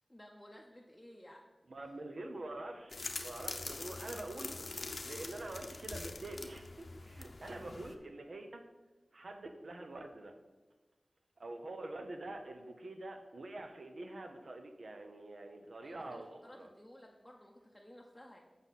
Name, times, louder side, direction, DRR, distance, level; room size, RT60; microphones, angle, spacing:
voice 1, 0.1-1.4 15.8-18.4, equal, 5° left, -2 dB, 0.7 m, -55 dB
voice 2, 1.7-4.6 5.0-8.6 9.1-10.3 11.4-16.7, right 2 dB, 75° right, 5 dB, 0.8 m, -46 dB
sound 1, 2.9-7.9, left 3 dB, 65° left, 0.6 m, -44 dB
8.0 x 5.4 x 4.1 m, 1.2 s
wide cardioid pair, 65°, 0 cm